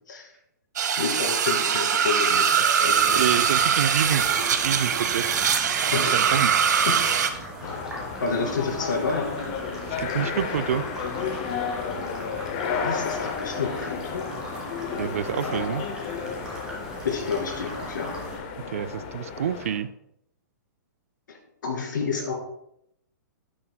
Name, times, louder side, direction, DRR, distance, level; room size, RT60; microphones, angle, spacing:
sound 1, 0.8-7.3, right 7 dB, 65° right, 0.8 m, -22 dB
voice 1, 1.0-3.3 5.8-7.0 7.6-7.8 8.2-9.4 12.7-14.3 17.0-18.2 21.3-22.3, left 5 dB, 75° left, 2 dB, 2.4 m, -30 dB
sound 2, 2.9-18.4, right 1 dB, 5° right, 1.3 m, -39 dB
voice 2, 3.1-4.3 4.6-5.4 6.0-6.5 10.0-10.8 15.0-15.8 18.7-19.9, right 9 dB, 45° right, 14 dB, 0.4 m, -27 dB
sound 3, 7.6-19.8, left 6 dB, 25° left, 0.6 m, -33 dB
9.2 x 8.7 x 2.2 m, 0.76 s
hypercardioid pair, 175°, 10 cm